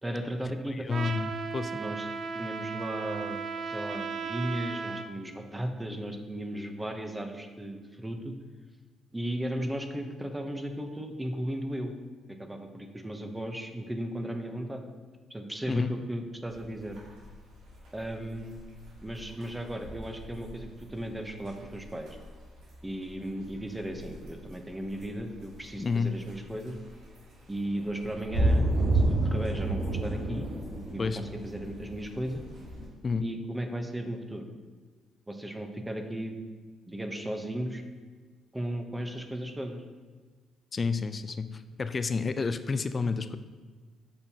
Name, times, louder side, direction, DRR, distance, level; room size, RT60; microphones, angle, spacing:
voice 1, 0.0-0.9 1.7-2.1 2.3-8.3 9.1-11.9 12.3-14.8 15.3-17.0 17.9-18.6 19.0-22.2 22.8-26.8 27.5-30.5 30.7-32.4 33.2-34.4 35.3-36.4 36.9-37.8 38.5-39.8, right 1 dB, 10° right, 5 dB, 0.7 m, -36 dB
voice 2, 0.8-1.8 15.7-15.9 25.8-26.2 31.0-31.2 33.0-33.3 40.7-43.4, left 4 dB, 35° left, 11 dB, 0.3 m, -30 dB
Trumpet, 0.9-5.1, right 5 dB, 50° right, 0.4 m, -35 dB
sound 1, 16.5-32.9, right 1 dB, 80° right, 1.7 m, -32 dB
6.7 x 5.3 x 2.8 m, 1.4 s
cardioid pair, 90°, 0 cm